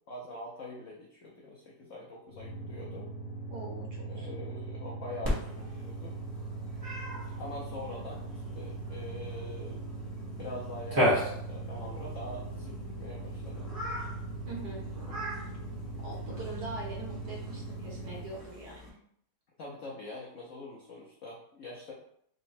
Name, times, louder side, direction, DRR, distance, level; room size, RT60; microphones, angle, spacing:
voice 1, 0.1-3.1 4.1-6.1 7.4-9.9 10.4-13.7 19.6-21.9, left 2 dB, 85° left, -3 dB, 0.6 m, -44 dB
sound 1, 2.3-18.4, right 3 dB, 60° left, 1.3 m, -40 dB
voice 2, 3.5-4.3 14.5-14.9 16.0-19.0, right 2 dB, 55° right, -3 dB, 1.5 m, -42 dB
Cat, 5.2-18.9, equal, 15° right, 0.7 m, -37 dB
3.8 x 2.1 x 4.1 m, 0.69 s
omnidirectional pair, 2.2 m